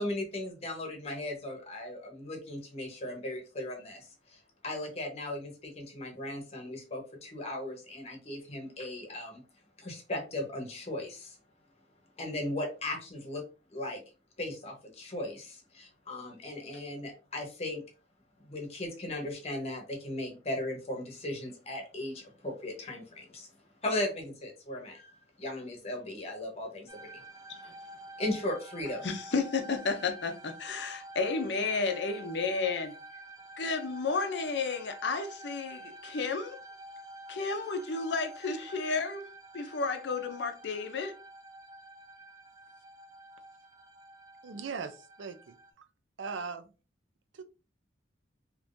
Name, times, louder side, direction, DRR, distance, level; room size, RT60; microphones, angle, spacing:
voice 1, 0.0-9.4 9.8-11.4 12.2-13.4 13.7-14.0 14.4-17.8 18.4-23.5 23.8-27.2 28.2-29.1, left 1 dB, 35° left, 1.0 m, -37 dB
sound 1, 26.9-45.7, right 1 dB, 20° right, 0.4 m, -49 dB
voice 2, 29.0-32.9 33.6-36.6 37.3-39.3 39.5-41.1, left 4 dB, 65° left, 0.5 m, -32 dB
voice 3, 44.4-45.9 46.2-46.7 47.3-47.4, right 5 dB, 75° right, 0.5 m, -40 dB
3.5 x 3.0 x 2.6 m
head